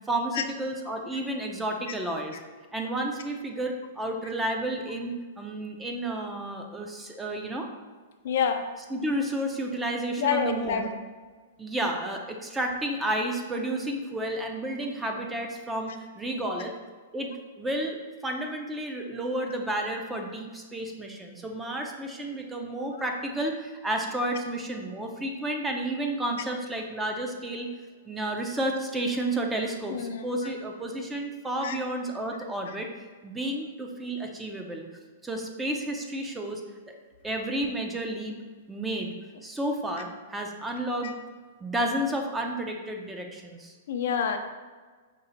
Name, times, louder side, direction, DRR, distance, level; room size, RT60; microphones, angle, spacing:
voice 1, 0.1-2.4 2.7-7.7 8.9-10.9 11.6-16.7 17.1-27.7 28.1-32.9 33.2-34.9 35.2-36.6 36.9-37.0 37.2-38.4 38.7-39.1 39.4-41.2 41.6-43.7, right 1 dB, 10° right, 2 dB, 0.4 m, -31 dB
voice 2, 8.2-8.7 10.2-10.9 29.9-30.4 31.6-31.8 43.9-44.4, left 7 dB, 65° left, 6 dB, 0.4 m, -27 dB
5.2 x 2.0 x 3.9 m, 1.4 s
hypercardioid pair, 140°, 0 cm